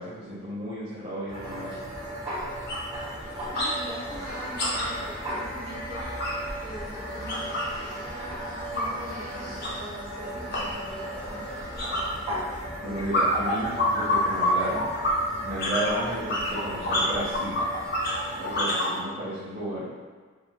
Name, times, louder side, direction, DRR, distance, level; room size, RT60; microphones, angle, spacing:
voice 1, 0.0-1.8 12.8-14.9 15.4-17.6 18.4-19.8, right 1 dB, 45° right, -13 dB, 0.8 m, -33 dB
sound 1, 1.3-18.6, right 1 dB, 25° right, 1.2 m, -37 dB
sound 2, 1.5-1.6 1.9-2.1 2.4-3.8 4.0-7.8 8.1-18.9, left 1 dB, 50° left, 0.7 m, -29 dB
voice 2, 3.5-6.0 6.6-8.0 8.7-11.7, equal, 60° right, -8 dB, 1.1 m, -43 dB
sound 3, 4.0-16.8, equal, 5° left, 0.6 m, -43 dB
3.5 x 2.1 x 3.5 m, 1.4 s
head